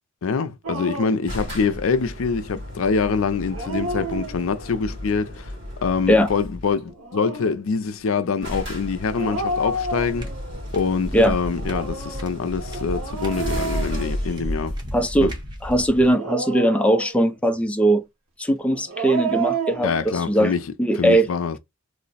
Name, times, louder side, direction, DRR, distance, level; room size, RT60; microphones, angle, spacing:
voice 1, 0.2-5.5 5.8-10.3 10.7-14.8 15.2-15.3 19.8-20.7 20.9-21.6, left 5 dB, 70° left, 0.5 m, -25 dB
Dog, 0.6-1.3 3.4-4.7 6.8-7.6 9.1-10.6 11.5-14.7 16.0-17.4 18.7-20.0, right 3 dB, 75° right, 1.2 m, -30 dB
sound 1, 1.3-6.8 7.8-7.9 8.1-8.2 8.4-15.9, left 1 dB, 55° right, 1.8 m, -33 dB
sound 2, 10.0-16.1, equal, 20° right, 0.8 m, -34 dB
voice 2, 14.9-15.3 15.6-18.0 18.4-20.5 20.8-21.3, right 1 dB, 5° left, 0.3 m, -19 dB
3.1 x 2.0 x 4.0 m
head